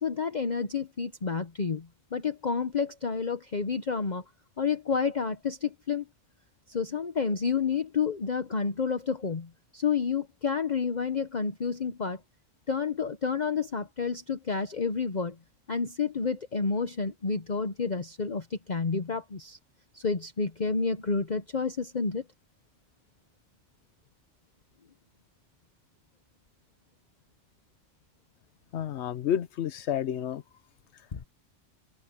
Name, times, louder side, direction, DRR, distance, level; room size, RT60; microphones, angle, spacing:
voice 1, 0.0-4.2 4.6-6.0 6.7-12.2 12.7-15.4 15.7-19.6 19.9-22.2 31.1-31.2, left 5 dB, 40° left, 1.0 m, -30 dB
voice 2, 28.7-30.4, left 9 dB, 70° left, 1.0 m, -30 dB
omnidirectional pair, 1.2 m